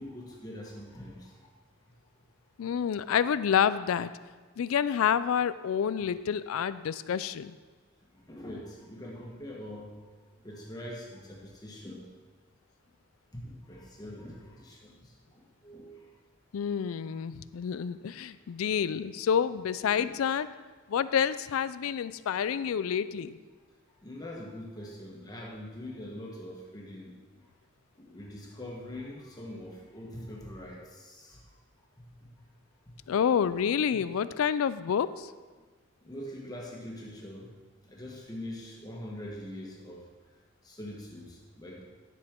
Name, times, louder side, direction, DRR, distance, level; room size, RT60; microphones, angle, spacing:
voice 1, 0.0-1.5 6.0-6.1 8.0-10.1 10.4-12.1 13.3-16.1 16.6-16.8 19.9-20.1 23.2-23.3 24.0-27.5 28.0-31.6 32.0-32.4 32.8-32.9 33.4-33.6 33.9-34.0 36.0-37.5 37.8-41.8, left 1 dB, 20° left, -2 dB, 1.4 m, -44 dB
voice 2, 2.6-4.1 4.6-7.6 16.5-20.5 20.9-23.4 33.1-35.3, left 8 dB, 85° left, 15 dB, 0.4 m, -28 dB
11.0 x 7.6 x 3.7 m, 1.4 s
head